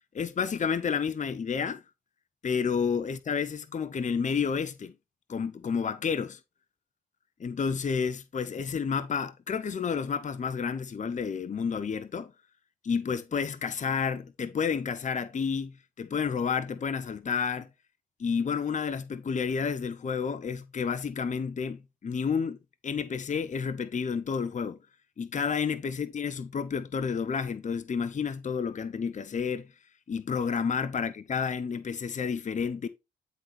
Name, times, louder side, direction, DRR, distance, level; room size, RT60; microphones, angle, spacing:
voice 1, 0.1-1.8 2.4-4.9 5.3-6.4 7.4-12.3 12.8-17.7 18.2-22.6 22.8-24.8 25.2-29.7 30.1-32.9, left 6 dB, 40° left, 0.9 m, -30 dB
9.5 x 4.1 x 4.3 m
supercardioid pair, 50°, 19 cm